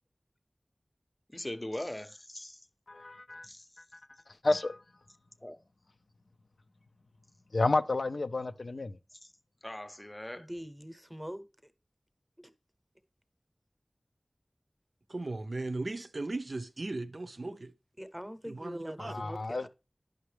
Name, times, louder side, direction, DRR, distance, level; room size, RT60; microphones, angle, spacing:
voice 1, 1.3-2.7 3.4-3.8 5.4-5.6 9.1-9.3 9.6-10.5, left 1 dB, 30° left, 0.6 m, -41 dB
voice 2, 2.9-3.5 3.9-4.0 4.4-4.8 7.5-9.0 19.0-19.7, left 2 dB, 90° left, 0.4 m, -30 dB
voice 3, 10.4-11.7 12.4-12.5 18.0-19.7, equal, 10° right, 0.7 m, -43 dB
voice 4, 15.1-17.7 18.5-19.2, right 2 dB, 70° right, 0.4 m, -37 dB
10.5 x 5.6 x 3.3 m
wide cardioid pair, 45°, 0 cm